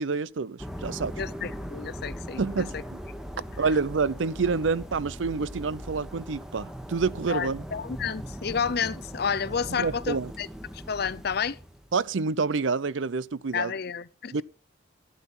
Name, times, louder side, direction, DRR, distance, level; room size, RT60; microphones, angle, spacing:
voice 1, 0.0-1.1 2.4-3.0 3.6-7.6 9.7-10.3 11.9-13.7 14.3-14.4, right 4 dB, 80° right, 0.6 m, -28 dB
sound 1, 0.6-12.0, equal, 5° right, 1.2 m, -40 dB
voice 2, 1.2-2.8 7.3-10.5 10.7-11.6 13.5-14.4, left 6 dB, 55° left, 0.6 m, -31 dB
12.5 x 9.0 x 5.6 m
head